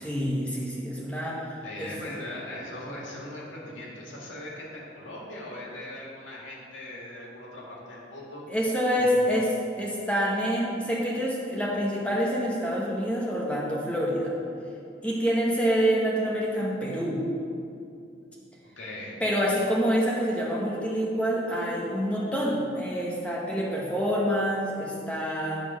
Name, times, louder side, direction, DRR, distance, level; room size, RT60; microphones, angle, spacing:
voice 1, 0.0-1.9 8.5-9.5 9.8-14.3 15.0-17.2 19.2-25.6, equal, 5° left, -4 dB, 1.1 m, -27 dB
voice 2, 1.6-8.4 9.0-9.3 18.8-19.2, left 1 dB, 85° left, -4 dB, 2.0 m, -40 dB
10.0 x 4.2 x 6.2 m, 2.6 s
head